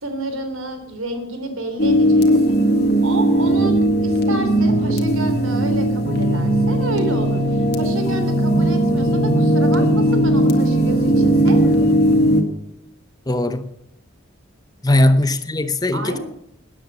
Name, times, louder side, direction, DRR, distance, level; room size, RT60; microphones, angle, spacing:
voice 1, 0.0-2.6 3.0-11.9 14.9-15.1 15.9-16.2, right 2 dB, 85° right, 3.4 m, -30 dB
sound 1, 1.8-12.4, right 1 dB, 50° left, 1.9 m, -17 dB
voice 2, 13.3-13.7 14.8-16.2, left 1 dB, 20° left, 0.7 m, -18 dB
13.0 x 10.0 x 7.5 m
head